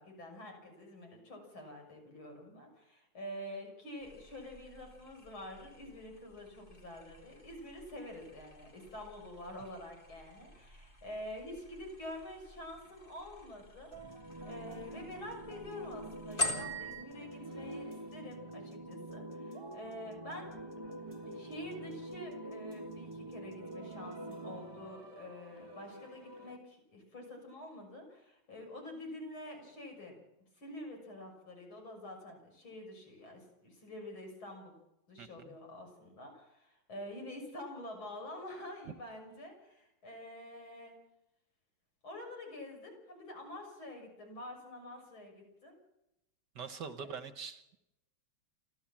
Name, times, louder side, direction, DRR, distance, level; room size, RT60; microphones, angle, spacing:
voice 1, 0.0-13.9 14.4-20.5 21.3-30.2 30.6-34.8 35.1-40.9 42.0-45.8 47.1-47.2, left 1 dB, 65° left, 2 dB, 7.3 m, -47 dB
sound 1, 4.0-17.0, left 1 dB, 25° left, 2.2 m, -45 dB
sound 2, 13.9-26.6, right 1 dB, 15° right, 1.1 m, -46 dB
voice 2, 35.2-35.5 46.5-47.8, right 6 dB, 60° right, 10 dB, 1.5 m, -44 dB
29.0 x 13.0 x 7.4 m, 0.89 s
omnidirectional pair, 2.4 m